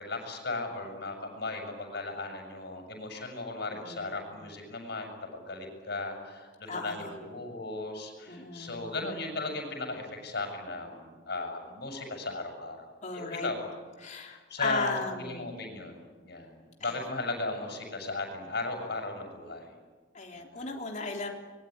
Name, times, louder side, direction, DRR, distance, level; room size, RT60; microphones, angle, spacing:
voice 1, 0.0-13.6 14.0-19.7 20.5-20.7, left 2 dB, 60° left, 3 dB, 7.3 m, -36 dB
voice 2, 3.9-4.3 6.7-7.1 8.3-8.9 13.0-13.5 14.0-15.5 16.8-17.0 20.1-21.3, left 3 dB, 40° left, 1 dB, 3.5 m, -36 dB
25.0 x 21.5 x 9.7 m, 1.4 s
head